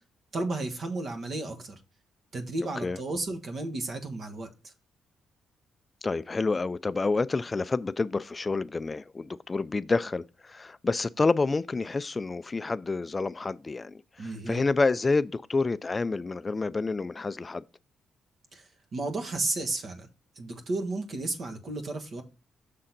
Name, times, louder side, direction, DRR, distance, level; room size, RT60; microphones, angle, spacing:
voice 1, 0.3-1.8 2.3-4.7 14.2-14.6 18.5-20.1 20.4-22.2, right 2 dB, 55° right, 1.3 m, -33 dB
voice 2, 6.0-17.6, left 3 dB, 25° left, 0.3 m, -28 dB
6.7 x 3.7 x 5.9 m
cardioid pair, 90°, 0 cm